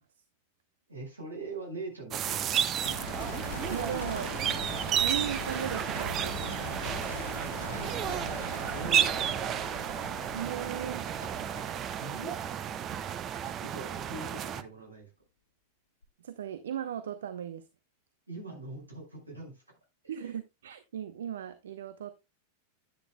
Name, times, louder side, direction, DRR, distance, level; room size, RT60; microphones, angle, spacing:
voice 1, 0.9-3.0 7.5-8.3 8.7-9.3 11.2-11.3 11.5-12.3 13.6-15.1 18.3-19.6 20.0-20.3, right 3 dB, 80° right, 5.2 m, -43 dB
sound 1, 2.1-14.6, right 9 dB, 30° right, 0.8 m, -32 dB
sound 2, 2.8-13.8 16.0-16.1, left 3 dB, 70° left, 1.5 m, -42 dB
voice 2, 3.7-4.3 5.0-6.6 8.8-9.1 10.3-11.1 16.2-17.6 20.1-22.1, right 9 dB, 60° right, 0.8 m, -37 dB
11.0 x 10.0 x 2.3 m
figure-of-eight pair, 90°, 0 cm